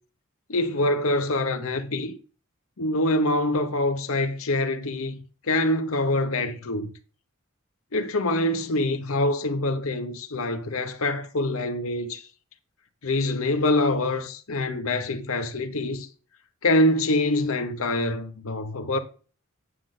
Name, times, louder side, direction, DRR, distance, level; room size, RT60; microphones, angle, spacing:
voice 1, 0.5-2.1 2.8-5.2 5.5-6.9 7.9-12.2 13.0-16.1 16.6-19.0, left 1 dB, 75° left, 0.9 m, -25 dB
9.8 x 6.5 x 3.8 m
head